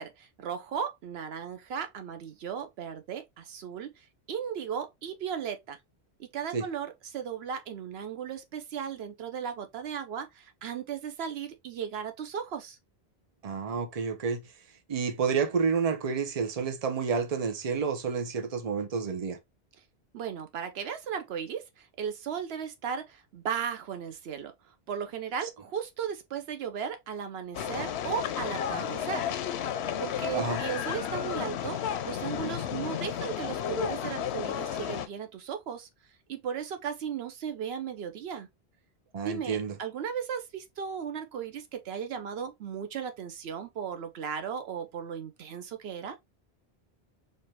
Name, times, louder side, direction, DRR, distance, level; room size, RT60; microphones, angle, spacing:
voice 1, 0.0-5.8 6.2-12.8 20.1-24.5 24.9-29.3 30.0-35.9 36.3-38.5 39.2-46.2, right 7 dB, 75° right, 0.8 m, -36 dB
voice 2, 13.4-14.4 14.9-19.4 30.3-30.6 39.1-39.8, right 5 dB, 40° right, 0.8 m, -29 dB
sound 1, 27.5-35.1, left 9 dB, 85° left, 0.9 m, -32 dB
4.3 x 2.7 x 3.1 m
omnidirectional pair, 1.1 m